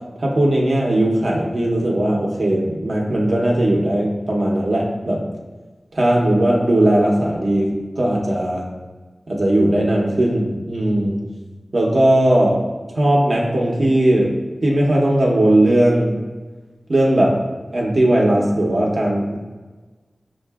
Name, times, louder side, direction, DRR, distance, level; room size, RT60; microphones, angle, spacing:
voice 1, 0.2-5.2 5.9-8.7 9.3-11.2 11.7-12.6 12.9-14.3 14.6-16.2 16.9-17.4 17.7-19.4, right 1 dB, 70° right, -2 dB, 0.7 m, -18 dB
5.6 x 2.5 x 2.3 m, 1.3 s
cardioid pair, 40°, 0 cm